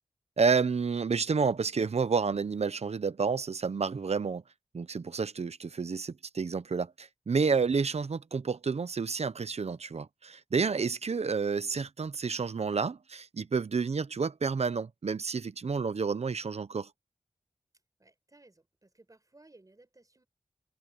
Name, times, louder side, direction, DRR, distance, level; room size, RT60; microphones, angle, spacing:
voice 1, 0.4-4.4 4.7-16.9, right 5 dB, 60° right, 0.8 m, -30 dB
voice 2, 18.0-20.3, right 2 dB, 30° right, 6.1 m, -59 dB
wide cardioid pair, 100°, 12 cm